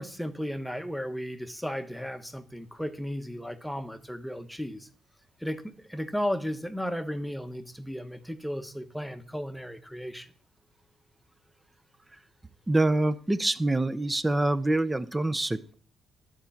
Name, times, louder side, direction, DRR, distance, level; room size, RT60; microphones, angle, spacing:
voice 1, 0.0-4.9 5.4-10.3, equal, 5° left, 9 dB, 1.0 m, -34 dB
voice 2, 12.7-15.7, right 2 dB, 15° right, 14 dB, 0.7 m, -25 dB
11.0 x 4.6 x 7.1 m, 0.43 s
cardioid pair, 90°, 0 cm